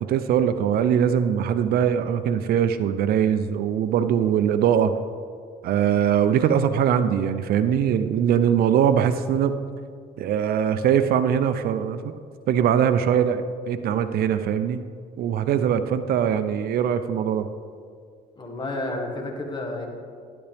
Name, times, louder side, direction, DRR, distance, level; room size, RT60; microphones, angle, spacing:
voice 1, 0.0-5.0 5.6-9.6 10.2-12.1 12.5-14.8 15.2-17.5, right 8 dB, 65° right, 11 dB, 0.5 m, -22 dB
voice 2, 18.4-19.9, left 2 dB, 25° left, 1 dB, 1.8 m, -30 dB
11.5 x 11.5 x 3.5 m, 2.2 s
cardioid pair, 110°, 17 cm